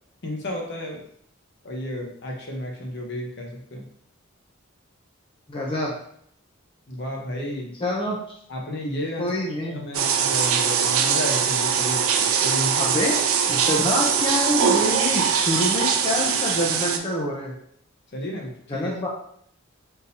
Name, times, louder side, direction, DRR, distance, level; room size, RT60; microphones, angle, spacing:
voice 1, 0.2-1.1 1.6-3.9 6.9-7.8 8.5-13.0 13.5-13.9 18.1-18.9, left 1 dB, 55° left, 0 dB, 0.9 m, -32 dB
voice 2, 5.5-5.9 7.8-8.2 9.2-10.0 12.8-17.5 18.7-19.1, left 1 dB, 25° left, -3 dB, 0.6 m, -26 dB
sound 1, 9.9-17.0, right 7 dB, 90° right, 0.5 m, -22 dB
3.7 x 2.7 x 4.1 m, 0.66 s
head